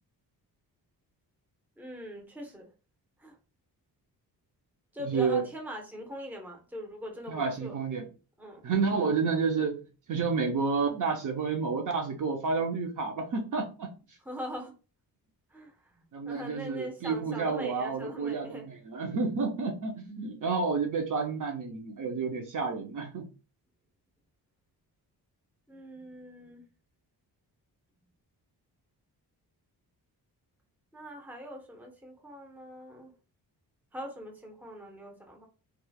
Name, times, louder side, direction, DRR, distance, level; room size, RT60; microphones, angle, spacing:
voice 1, 1.8-2.7 3.2-3.4 4.9-7.8 8.4-8.6 14.2-14.7 15.5-18.6 25.7-26.6 30.9-33.1 33.9-35.5, equal, 5° right, 1 dB, 0.7 m, -42 dB
voice 2, 5.0-5.4 7.3-8.0 8.6-9.8 10.1-14.2 16.1-23.3, right 4 dB, 50° right, 3 dB, 0.6 m, -30 dB
3.0 x 2.4 x 2.3 m, 0.34 s
cardioid pair, 95°, 40 cm